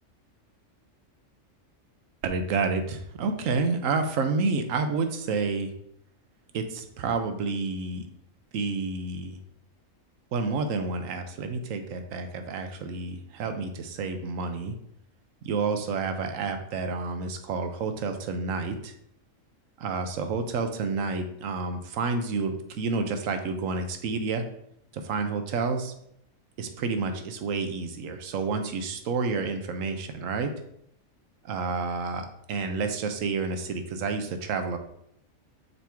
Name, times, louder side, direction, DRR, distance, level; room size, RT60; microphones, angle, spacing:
voice 1, 2.2-5.7 6.5-8.1 8.5-9.4 10.3-14.8 15.4-18.9 19.8-24.4 24.9-25.9 26.6-30.5 31.4-34.8, right 4 dB, 80° right, 7 dB, 1.1 m, -29 dB
6.6 x 4.5 x 3.5 m, 0.71 s
omnidirectional pair, 1.4 m